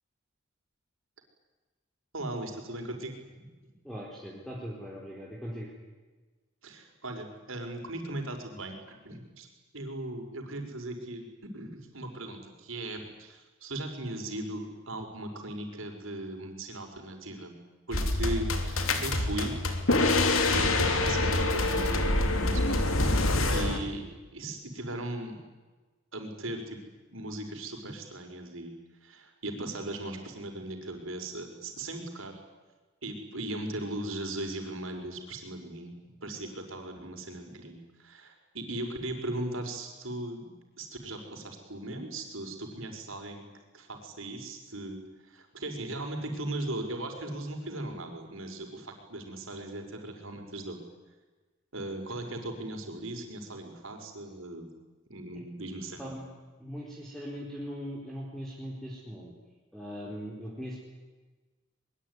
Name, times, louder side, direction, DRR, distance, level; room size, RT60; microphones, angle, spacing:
voice 1, 2.1-3.5 6.6-8.8 9.0-9.5 9.7-17.5 17.9-19.5 20.5-23.1 23.5-24.1 24.3-25.4 26.1-26.8 27.0-28.8 29.0-32.4 33.0-35.9 36.2-43.4 43.7-45.0 45.3-50.8 51.7-54.7 55.1-56.1, right 1 dB, 80° right, 4 dB, 5.4 m, -38 dB
voice 2, 3.8-5.7 55.3-55.4 56.0-56.2 56.6-59.3 59.7-60.8, equal, ahead, -4 dB, 4.3 m, -40 dB
sound 1, 17.9-23.8, left 2 dB, 85° left, 3.1 m, -26 dB
23.5 x 22.5 x 9.8 m, 1.3 s
head